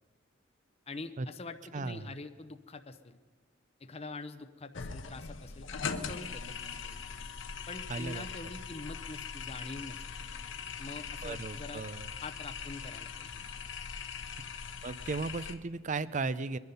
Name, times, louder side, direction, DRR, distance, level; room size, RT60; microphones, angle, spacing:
voice 1, 0.9-3.2 3.8-6.6 6.8-7.0 7.7-10.0 10.8-11.8 12.2-13.3, left 3 dB, 35° left, 9 dB, 0.7 m, -44 dB
voice 2, 1.7-2.2 7.9-8.3 11.2-12.1 14.8-16.6, right 3 dB, 40° right, 16 dB, 0.5 m, -36 dB
sound 1, 4.7-15.5, left 6 dB, 70° left, 1.0 m, -41 dB
23.0 x 10.5 x 5.5 m, 1.4 s
head